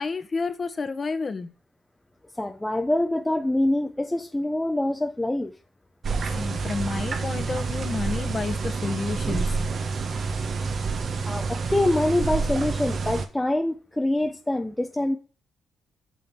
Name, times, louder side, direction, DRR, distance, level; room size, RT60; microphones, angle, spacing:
voice 1, 0.0-1.5 6.3-9.6, left 4 dB, 35° left, 1.4 m, -30 dB
voice 2, 2.4-5.5 11.3-15.2, left 1 dB, 10° left, 1.0 m, -25 dB
sound 1, 6.0-13.3, right 4 dB, 50° right, 1.6 m, -28 dB
8.6 x 6.4 x 7.6 m
cardioid pair, 90°, 0 cm